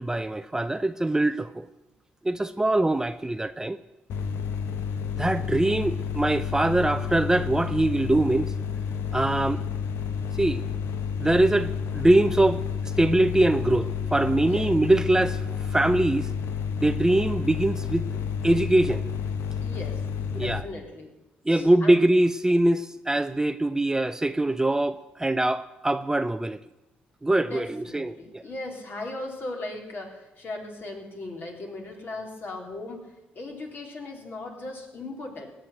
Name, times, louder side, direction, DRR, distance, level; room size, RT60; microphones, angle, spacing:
voice 1, 0.0-1.6 2.2-3.8 5.2-8.5 9.1-9.6 10.4-10.6 11.2-16.3 16.8-18.1 18.4-19.0 20.3-20.6 21.5-26.6 27.2-28.4, right 1 dB, 15° right, 0.6 m, -23 dB
sound 1, 4.1-20.6, left 6 dB, 70° left, 1.1 m, -30 dB
voice 2, 19.6-20.0 20.4-21.1 21.5-22.0 27.4-35.5, left 2 dB, 50° left, 3.8 m, -38 dB
17.0 x 6.5 x 9.9 m
supercardioid pair, 55°, 4 cm